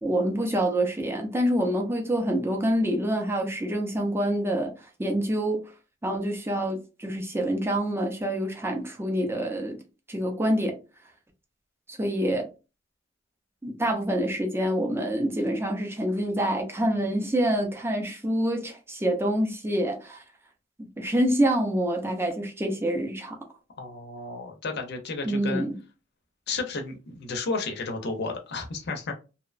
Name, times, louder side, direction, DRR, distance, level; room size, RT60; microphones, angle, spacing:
voice 1, 0.0-5.6 6.0-9.8 10.1-10.8 11.9-12.5 13.6-20.2 20.8-23.4 25.3-25.8, right 1 dB, 10° right, 0.5 m, -26 dB
voice 2, 23.8-25.6 26.5-29.1, left 3 dB, 55° left, 0.6 m, -32 dB
2.8 x 2.1 x 2.4 m
head